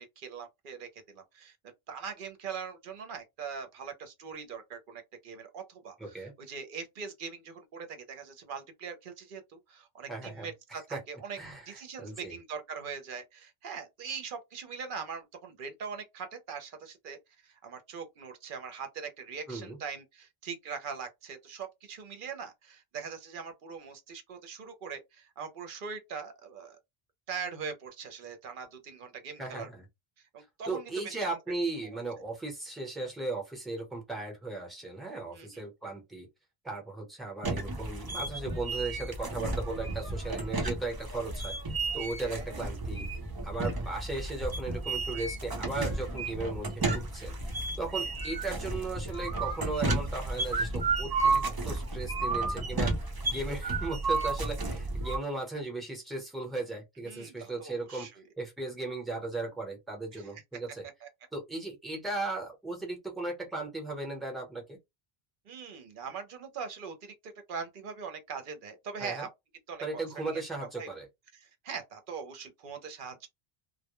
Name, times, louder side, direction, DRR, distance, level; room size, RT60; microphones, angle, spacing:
voice 1, 0.0-1.6 1.9-11.4 11.7-26.8 27.3-29.7 30.2-31.4 31.8-32.0 35.3-35.6 42.2-42.5 57.0-58.2 60.1-60.3 61.0-61.1 65.5-69.3 69.7-70.4 70.8-70.9 71.3-73.3, right 6 dB, 60° right, 0.7 m, -42 dB
voice 2, 6.0-6.3 10.1-10.5 10.9-11.0 11.4-12.4 19.5-19.8 29.4-29.8 30.6-36.3 36.6-41.5 41.9-43.1 43.4-47.4 47.8-52.9 53.2-58.1 58.4-60.9 61.3-64.8 69.0-69.3 69.8-71.1, right 2 dB, ahead, 0.7 m, -37 dB
sound 1, 37.4-55.2, right 3 dB, 35° right, 0.3 m, -32 dB
2.1 x 2.0 x 2.9 m
omnidirectional pair, 1.0 m